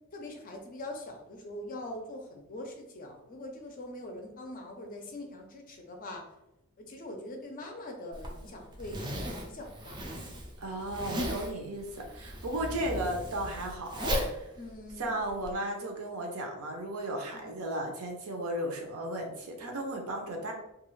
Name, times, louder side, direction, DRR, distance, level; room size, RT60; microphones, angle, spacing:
voice 1, 0.1-6.3 6.8-9.0 9.3-10.0 14.6-15.2 17.3-17.6, left 1 dB, 40° left, 2 dB, 0.5 m, -43 dB
Zipper (clothing), 8.1-15.5, equal, 20° right, 0.4 m, -37 dB
voice 2, 10.6-14.5 15.0-20.5, right 1 dB, 75° right, 2 dB, 0.6 m, -35 dB
2.4 x 2.3 x 3.1 m, 0.90 s
head